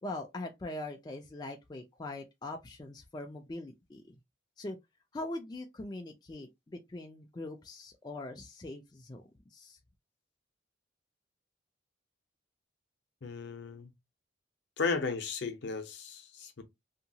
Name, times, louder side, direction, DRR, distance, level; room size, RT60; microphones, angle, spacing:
voice 1, 0.0-4.0 4.6-4.8 5.1-9.8, left 2 dB, 20° left, 0.3 m, -42 dB
voice 2, 13.2-13.9 14.8-16.6, left 4 dB, 60° left, 0.6 m, -35 dB
2.8 x 2.3 x 2.7 m
head